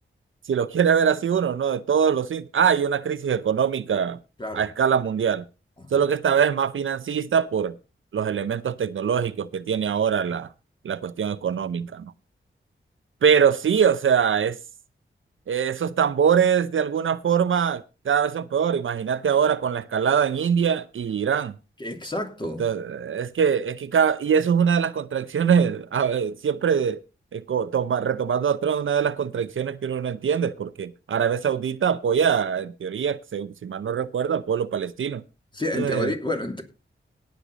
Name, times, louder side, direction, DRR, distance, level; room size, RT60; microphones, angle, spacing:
voice 1, 0.5-4.2 4.5-5.4 5.9-7.8 8.1-10.5 10.8-12.1 13.2-14.6 15.5-21.5 22.6-27.0 27.3-35.2 35.7-36.1, right 7 dB, 75° right, 0.7 m, -23 dB
voice 2, 21.8-22.7 35.5-36.6, left 1 dB, 25° left, 2.9 m, -29 dB
18.0 x 6.6 x 4.0 m
wide cardioid pair, 70°, 20 cm